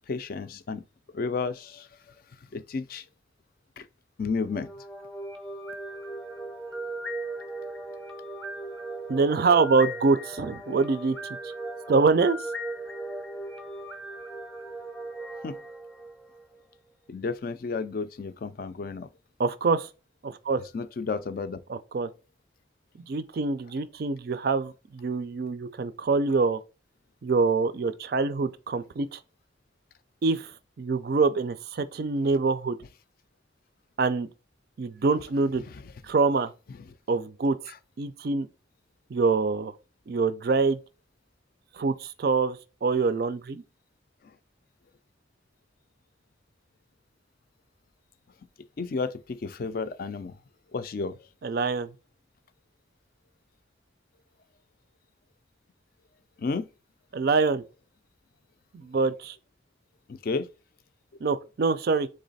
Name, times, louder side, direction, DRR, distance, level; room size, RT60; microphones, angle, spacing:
voice 1, 0.1-0.8 1.1-1.9 2.5-3.0 3.8-3.9 4.2-4.7 15.4-15.6 17.1-19.1 20.7-21.6 48.8-50.4 50.7-51.2 56.4-56.7 60.1-60.5, left 4 dB, 50° left, 0.4 m, -32 dB
sound 1, 4.4-16.6, right 2 dB, 5° left, 0.7 m, -37 dB
voice 2, 9.1-11.4 11.9-12.4 19.4-19.9 20.2-20.6 21.7-22.1 23.1-26.6 27.2-29.2 30.2-32.8 34.0-34.3 34.8-35.6 36.0-36.5 37.1-37.6 38.0-38.5 39.1-39.7 40.1-40.8 41.7-43.6 51.4-51.9 57.1-57.6 58.7-59.4 61.2-62.1, right 4 dB, 55° right, 0.4 m, -25 dB
3.8 x 3.2 x 4.0 m
head